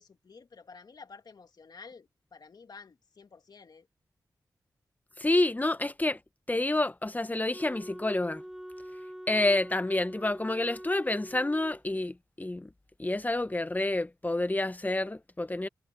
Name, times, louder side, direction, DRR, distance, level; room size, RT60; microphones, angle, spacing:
voice 1, 0.0-3.9, left 5 dB, 60° left, 2.5 m, -51 dB
voice 2, 5.2-6.2 6.5-8.4 9.3-12.7 13.0-15.7, left 2 dB, 20° left, 1.2 m, -28 dB
Wind instrument woodwind instrument, 7.5-11.8, equal, 5° right, 6.1 m, -44 dB
cardioid pair, 45°, 8 cm